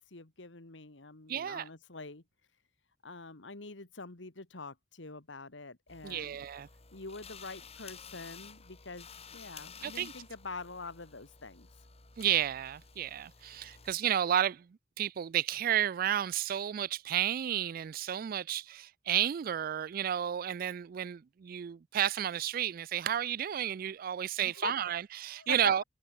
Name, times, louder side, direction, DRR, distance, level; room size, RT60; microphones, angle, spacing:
voice 1, 0.0-2.2 3.0-6.5 6.9-9.1 9.3-11.7 24.4-24.8 25.3-25.7, left 3 dB, 85° left, 2.1 m, -44 dB
voice 2, 1.3-1.7 6.0-6.7 9.8-10.1 12.2-14.7 15.0-25.8, right 10 dB, 50° right, 0.3 m, -32 dB
sound 1, 5.9-14.0, left 6 dB, 35° left, 1.8 m, -52 dB
head